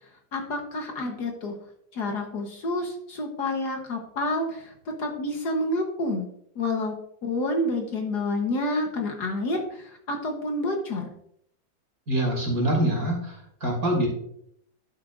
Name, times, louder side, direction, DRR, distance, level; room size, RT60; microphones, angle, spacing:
voice 1, 0.3-1.6 1.9-4.7 5.0-6.3 6.5-6.9 7.2-11.1, left 1 dB, 60° left, 3 dB, 1.7 m, -28 dB
voice 2, 12.1-14.1, right 1 dB, 45° right, -1 dB, 3.1 m, -25 dB
11.0 x 8.1 x 2.6 m, 0.70 s
omnidirectional pair, 2.1 m